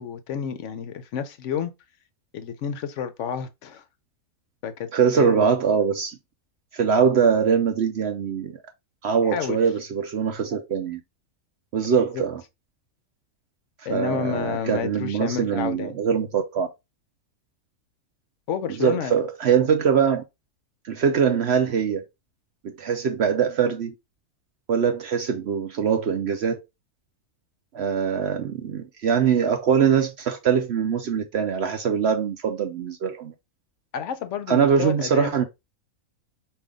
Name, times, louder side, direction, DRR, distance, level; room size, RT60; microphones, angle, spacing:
voice 1, 0.0-1.7 2.3-3.8 4.6-4.9 5.2-5.5 9.2-9.6 12.1-12.2 13.8-15.9 18.5-19.1 33.9-35.3, left 8 dB, 65° left, 0.8 m, -30 dB
voice 2, 4.9-6.2 6.7-8.6 9.0-11.0 11.7-12.4 13.9-16.7 18.8-20.2 20.8-22.0 22.6-23.9 24.7-26.6 27.7-33.3 34.5-35.4, right 7 dB, 60° right, 0.7 m, -22 dB
5.2 x 2.7 x 3.5 m
omnidirectional pair, 1.6 m